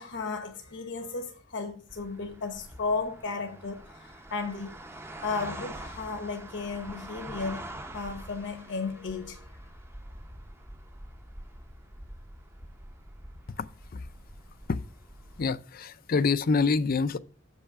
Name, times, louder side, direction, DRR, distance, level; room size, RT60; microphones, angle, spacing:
voice 1, 0.0-4.8 5.2-9.5, left 4 dB, 65° left, 1.0 m, -34 dB
sound 1, 1.9-15.5, right 1 dB, 15° right, 0.7 m, -45 dB
voice 2, 13.6-14.1 14.7-14.8 15.4-17.2, left 4 dB, 50° left, 0.4 m, -27 dB
7.6 x 5.6 x 5.8 m
head